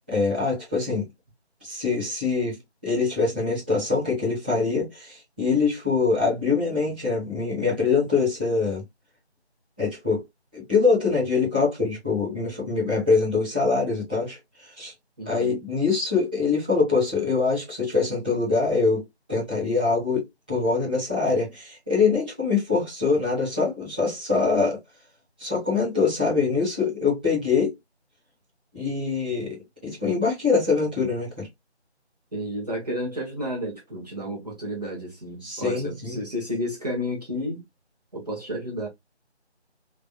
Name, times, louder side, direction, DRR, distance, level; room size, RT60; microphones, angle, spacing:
voice 1, 0.1-1.0 1.6-8.8 9.8-10.2 10.5-14.4 14.8-14.9 15.2-24.8 25.4-27.7 28.7-29.6 29.8-31.5 35.4-36.2, left 4 dB, 10° right, 1.4 m, -24 dB
voice 2, 15.2-15.5 32.3-37.6 38.1-38.9, equal, 35° right, 1.4 m, -31 dB
3.4 x 3.2 x 2.4 m
figure-of-eight pair, 175°, 34 cm